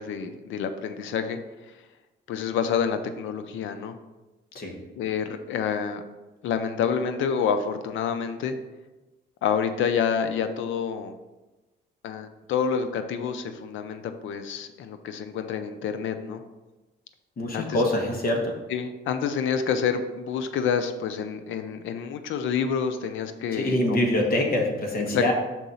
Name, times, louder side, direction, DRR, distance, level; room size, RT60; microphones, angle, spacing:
voice 1, 0.0-1.4 2.3-3.9 5.0-6.0 6.4-8.5 9.4-11.1 12.0-16.4 17.5-17.8 18.7-24.0 25.1-25.3, left 7 dB, 80° left, 9 dB, 0.6 m, -28 dB
voice 2, 17.4-18.5 23.5-25.3, left 1 dB, 50° left, 1 dB, 1.3 m, -24 dB
6.2 x 3.9 x 5.5 m, 1.1 s
cardioid pair, 90°, 20 cm